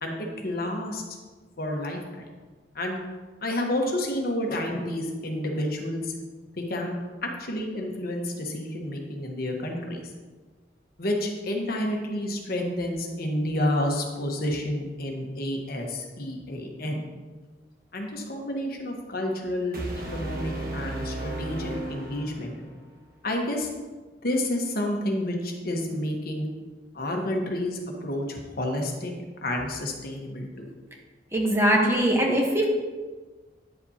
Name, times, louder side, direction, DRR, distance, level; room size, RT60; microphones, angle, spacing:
voice 1, 0.0-1.2 1.6-2.3 2.7-3.0 3.4-6.1 6.6-10.1 11.0-17.0 17.9-22.6 23.2-23.7 24.2-26.5 26.9-29.1 29.4-30.7, left 1 dB, 55° left, 1 dB, 1.2 m, -30 dB
sound 1, 19.7-22.8, right 2 dB, 55° right, 1.3 m, -34 dB
voice 2, 31.3-32.6, right 1 dB, 15° right, -1 dB, 1.1 m, -21 dB
9.7 x 7.3 x 2.8 m, 1.3 s
head